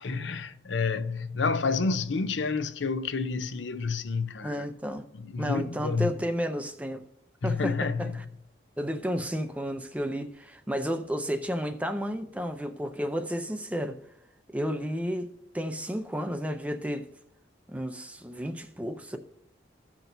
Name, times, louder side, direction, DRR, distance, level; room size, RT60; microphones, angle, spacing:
voice 1, 0.0-4.7 5.2-6.1 7.4-8.1, left 4 dB, 75° left, 0.6 m, -29 dB
voice 2, 4.4-5.0 5.4-7.1 7.4-8.2 8.8-14.0 14.5-17.1 17.7-19.2, equal, 5° right, 0.5 m, -32 dB
15.5 x 6.0 x 2.7 m
head